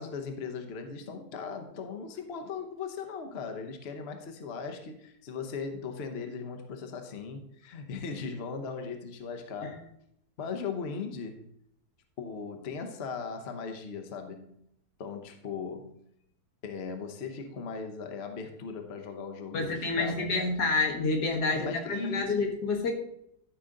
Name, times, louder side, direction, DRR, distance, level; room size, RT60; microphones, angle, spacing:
voice 1, 0.0-9.8 10.4-11.4 12.2-14.5 15.0-16.0 16.6-20.5 21.5-22.3, left 5 dB, 45° left, 5 dB, 1.0 m, -38 dB
voice 2, 19.5-22.9, left 3 dB, 80° left, 1 dB, 2.1 m, -28 dB
13.0 x 5.1 x 3.8 m, 0.73 s
omnidirectional pair, 1.7 m